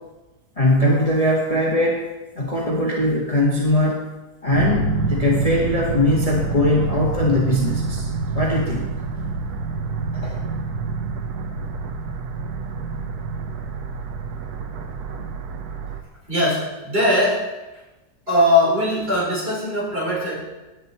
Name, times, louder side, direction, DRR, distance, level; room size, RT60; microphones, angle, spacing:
voice 1, 0.6-2.0 2.4-4.0 4.4-8.1 8.3-8.8 10.1-10.4, left 1 dB, 20° left, -3 dB, 1.8 m, -20 dB
sound 1, 4.5-16.0, right 4 dB, 70° right, 1.5 m, -27 dB
voice 2, 16.3-17.4 18.3-20.4, left 1 dB, 35° right, -6 dB, 5.7 m, -20 dB
17.0 x 9.2 x 4.3 m, 1.1 s
omnidirectional pair, 1.7 m